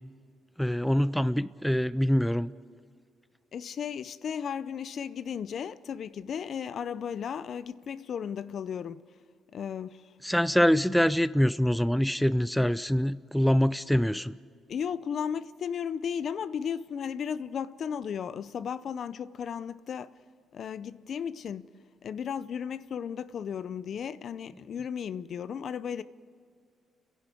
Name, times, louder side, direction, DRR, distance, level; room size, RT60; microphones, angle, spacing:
voice 1, 0.6-2.5 10.2-14.3, equal, ahead, 0.5 m, -25 dB
voice 2, 3.5-9.0 9.5-10.1 14.7-20.1 20.5-21.7 22.0-26.0, left 7 dB, 60° left, 0.6 m, -35 dB
29.0 x 11.0 x 8.4 m
cardioid pair, 90°, 0 cm